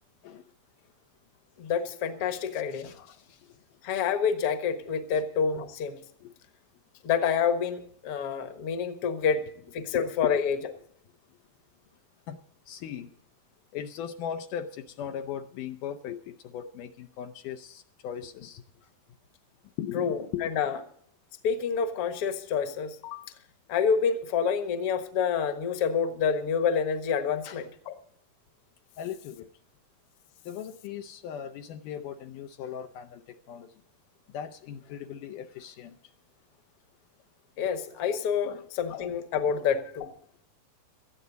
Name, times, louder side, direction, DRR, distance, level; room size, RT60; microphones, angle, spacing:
voice 1, 1.6-3.1 3.8-6.0 7.0-9.4 9.7-10.6 19.9-20.8 21.4-23.3 23.7-27.9 37.6-40.1, left 6 dB, 55° left, 7 dB, 1.8 m, -28 dB
voice 2, 2.7-3.2 5.1-5.2 6.2-6.3 9.9-10.4 12.3-12.4 12.7-13.1 13.7-18.6 19.8-20.5 27.4-27.6 29.0-29.5 30.5-33.7 34.3-35.9 38.4-38.6, left 9 dB, 75° left, 6 dB, 2.2 m, -38 dB
19.0 x 13.5 x 4.0 m, 0.62 s
omnidirectional pair, 4.0 m